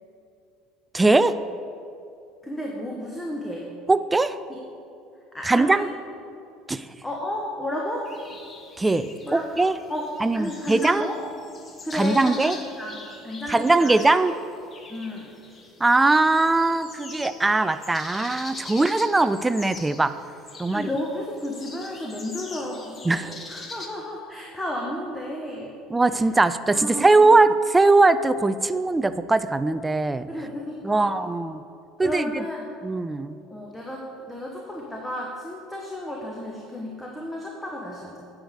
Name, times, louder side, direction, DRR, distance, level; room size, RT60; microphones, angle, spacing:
voice 1, 0.9-1.4 3.9-4.4 5.5-5.9 6.7-6.9 8.8-9.8 10.2-11.1 11.9-12.6 13.5-14.3 15.8-20.1 20.6-20.9 23.1-23.3 25.9-30.3 30.8-31.6 32.0-32.4 32.8-33.4, right 3 dB, 15° right, 13 dB, 0.4 m, -20 dB
voice 2, 2.4-3.7 4.5-4.6 5.3-5.9 7.0-8.1 9.2-9.4 9.9-10.1 10.3-11.2 11.8-14.0 14.9-15.3 20.7-25.7 26.7-27.4 30.3-31.2 32.0-32.7 33.5-38.2, left 1 dB, 10° left, -1 dB, 1.2 m, -33 dB
sound 1, 8.0-23.9, left 3 dB, 30° left, 1.1 m, -43 dB
9.1 x 4.9 x 6.5 m, 2.5 s
figure-of-eight pair, 65°, 0 cm